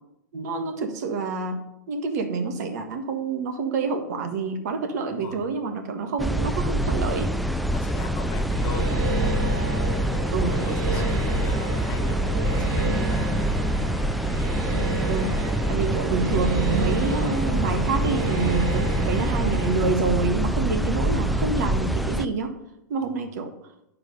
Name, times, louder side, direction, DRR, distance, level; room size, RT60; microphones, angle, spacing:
voice 1, 0.3-1.6 1.9-7.3 10.3-10.6 15.1-22.5 22.9-23.5, right 4 dB, 60° right, 5 dB, 1.5 m, -27 dB
voice 2, 5.1-5.4 7.7-9.1 10.5-13.4 23.0-23.3, left 5 dB, 40° left, 6 dB, 1.8 m, -39 dB
sound 1, 6.2-22.3, right 1 dB, ahead, 0.4 m, -25 dB
sound 2, 8.5-19.8, right 2 dB, 40° right, 2.2 m, -30 dB
11.0 x 4.8 x 5.3 m, 0.83 s
hypercardioid pair, 105°, 10 cm